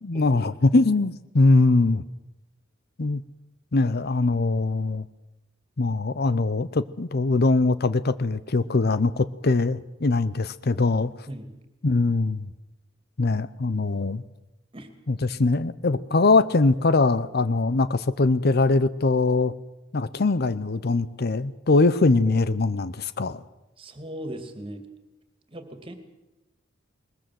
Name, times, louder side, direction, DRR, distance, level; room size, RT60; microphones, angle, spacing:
voice 1, 0.0-2.0 3.0-3.2 3.7-5.0 5.8-11.1 11.8-12.5 13.2-14.2 15.1-19.5 19.9-23.4, left 3 dB, 55° left, 16 dB, 0.7 m, -22 dB
voice 2, 11.3-11.6 14.7-14.9 23.8-24.8 25.5-26.0, right 1 dB, 25° right, 8 dB, 2.6 m, -38 dB
21.0 x 20.5 x 7.7 m, 0.96 s
head